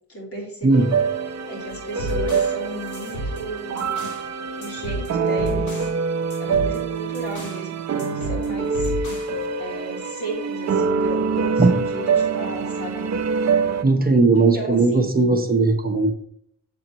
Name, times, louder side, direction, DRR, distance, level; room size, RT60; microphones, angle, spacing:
voice 1, 0.1-1.0 1.5-4.0 4.6-5.9 6.4-9.2 9.6-13.1 14.3-15.1, right 1 dB, 45° left, -3 dB, 3.1 m, -34 dB
sound 1, 0.7-13.8, right 5 dB, 55° right, 0.8 m, -25 dB
sound 2, 1.7-4.3 4.6-6.0 6.3-7.7 8.0-9.4, equal, 60° left, 3.0 m, -32 dB
voice 2, 13.8-16.1, right 3 dB, 25° right, 3 dB, 1.0 m, -17 dB
7.7 x 7.4 x 3.0 m, 0.65 s
wide cardioid pair, 130°, 33 cm